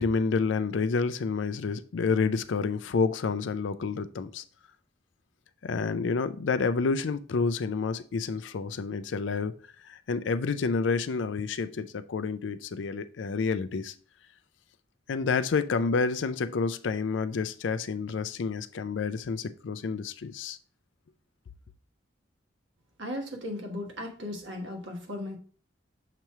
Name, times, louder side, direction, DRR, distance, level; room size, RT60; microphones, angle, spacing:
voice 1, 0.0-4.4 5.6-9.5 9.8-13.9 15.1-20.6, left 4 dB, 80° left, 0.4 m, -29 dB
voice 2, 23.0-25.4, left 1 dB, 75° right, 1.4 m, -36 dB
6.7 x 3.0 x 4.7 m
head